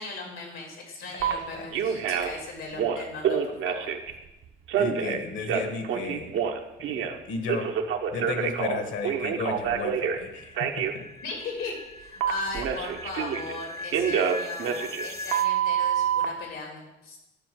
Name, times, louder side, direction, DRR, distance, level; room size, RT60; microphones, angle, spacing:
voice 1, 0.0-3.9 11.2-17.2, left 3 dB, 90° left, 1 dB, 3.0 m, -38 dB
voice 2, 1.1-1.7 4.7-6.3 7.0-7.7 8.1-11.1, left 4 dB, 70° left, 6 dB, 1.6 m, -34 dB
Telephone, 1.2-1.3 1.7-2.4 2.7-4.1 4.7-7.2 7.5-10.2 10.6-10.9 12.2-13.6 13.9-16.3, right 8 dB, 80° right, 1.0 m, -27 dB
sound 1, 8.3-15.5, left 1 dB, 15° left, 0.6 m, -41 dB
10.0 x 4.6 x 7.7 m, 0.94 s
cardioid pair, 90°, 20 cm